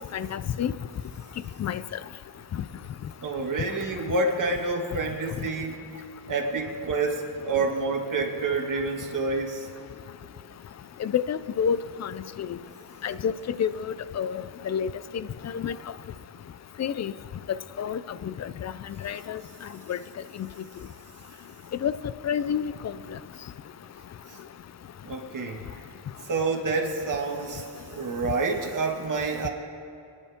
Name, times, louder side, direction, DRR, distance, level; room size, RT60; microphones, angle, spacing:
voice 1, 0.1-0.7 1.6-1.8 11.0-12.1 12.4-12.5 13.0-14.9 15.1-15.8 16.8-17.1 17.8-18.3 18.6-18.7 19.0-19.4 19.9-20.0 21.8-22.0 22.2-22.7, left 8 dB, 40° left, 15 dB, 0.4 m, -28 dB
voice 2, 3.2-5.8 6.3-9.7 25.0-25.6 26.3-29.5, right 3 dB, 45° right, 0 dB, 1.9 m, -28 dB
26.5 x 10.0 x 3.6 m, 2.7 s
wide cardioid pair, 145°, 44 cm